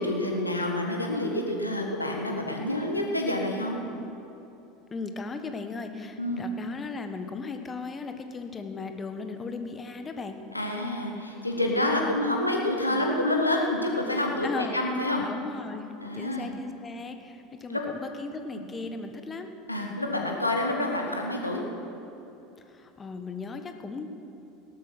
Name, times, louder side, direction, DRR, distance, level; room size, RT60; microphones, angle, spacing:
voice 1, 0.0-3.8 6.2-6.4 10.5-15.2 16.0-16.5 17.7-17.8 19.7-21.6, left 1 dB, 85° left, 1 dB, 1.6 m, -28 dB
voice 2, 4.9-10.4 12.9-13.1 14.4-14.8 15.2-15.8 16.1-19.5 22.7-24.1, left 4 dB, 25° left, 7 dB, 1.4 m, -37 dB
17.0 x 12.5 x 6.2 m, 2.9 s
figure-of-eight pair, 75°, 0 cm